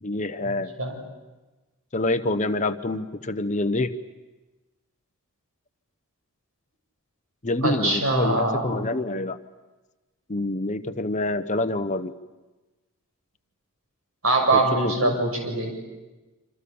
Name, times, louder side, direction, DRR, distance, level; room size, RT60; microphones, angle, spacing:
voice 1, 0.0-0.7 1.9-3.9 7.4-9.4 10.3-12.1 14.5-15.1, left 2 dB, 35° left, 10 dB, 0.9 m, -27 dB
voice 2, 7.6-8.9 14.2-15.7, right 2 dB, 75° right, 4 dB, 6.8 m, -23 dB
27.0 x 27.0 x 7.1 m, 1.2 s
head